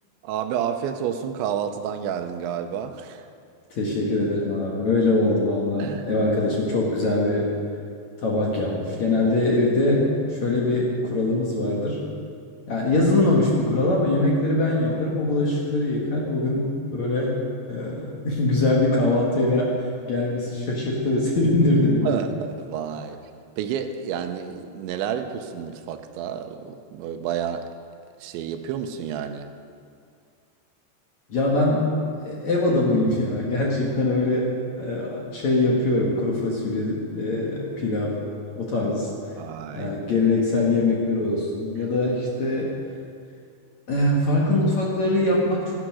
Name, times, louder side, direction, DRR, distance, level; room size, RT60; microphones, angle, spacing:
voice 1, 0.2-3.3 5.8-6.1 22.0-23.2 23.6-27.7 28.2-29.5 39.4-39.9, right 8 dB, 85° right, 7 dB, 3.1 m, -30 dB
voice 2, 3.7-7.5 8.2-12.0 12.7-17.3 17.7-19.7 20.1-22.2 31.3-31.9 32.3-34.5 34.8-38.2 38.6-39.1 39.7-42.7 43.9-45.7, left 2 dB, 55° left, -3 dB, 2.3 m, -22 dB
15.5 x 12.5 x 6.2 m, 2.3 s
omnidirectional pair, 5.2 m